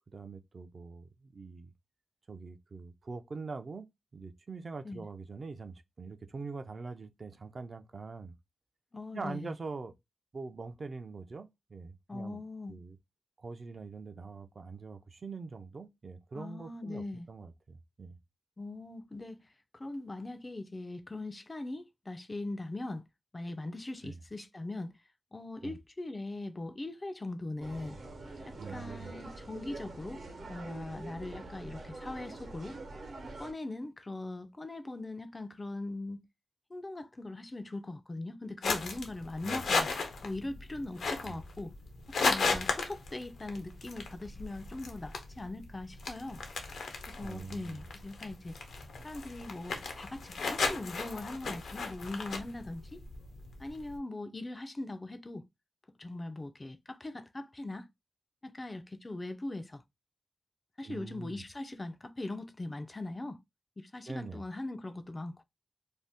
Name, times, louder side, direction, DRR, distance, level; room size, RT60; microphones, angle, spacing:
voice 1, 0.1-1.7 2.3-3.9 4.1-8.4 9.1-9.9 10.3-12.4 12.7-13.0 13.4-18.2 24.0-24.2 25.6-25.8 28.6-29.1 39.4-39.6 41.2-41.4 42.5-42.6 47.2-47.8 60.8-61.4 64.1-64.4, right 4 dB, 50° right, 0.4 m, -43 dB
voice 2, 8.9-9.6 12.1-12.8 16.3-17.3 18.6-23.0 23.3-24.9 25.3-28.0 28.5-32.8 33.4-36.2 36.7-39.9 40.2-41.7 42.2-46.4 47.1-48.6 49.0-53.0 53.6-55.4 56.0-57.9 58.4-59.8 60.8-63.4 63.8-65.4, left 2 dB, 30° left, 0.4 m, -40 dB
sound 1, 27.6-33.5, right 2 dB, 70° right, 1.0 m, -45 dB
sound 2, 38.6-54.0, left 4 dB, 85° left, 0.6 m, -36 dB
2.6 x 2.1 x 3.4 m
cardioid pair, 70°, 0 cm